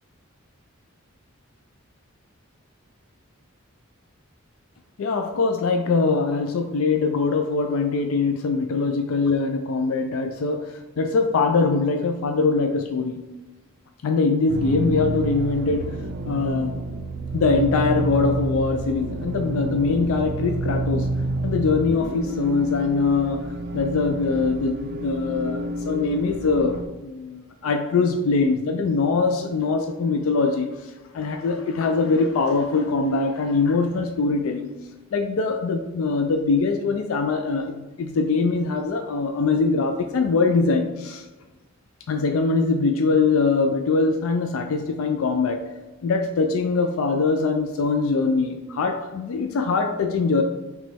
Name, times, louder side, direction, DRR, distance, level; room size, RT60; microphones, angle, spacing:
voice 1, 5.0-13.2 14.0-16.0 16.2-16.8 17.3-21.1 21.4-30.7 31.1-34.7 35.1-41.2 42.1-45.7 46.0-50.4, left 4 dB, 75° left, 5 dB, 0.4 m, -22 dB
sound 1, 14.5-26.8, right 2 dB, 50° right, 0.4 m, -29 dB
5.1 x 3.1 x 3.4 m, 1.1 s
head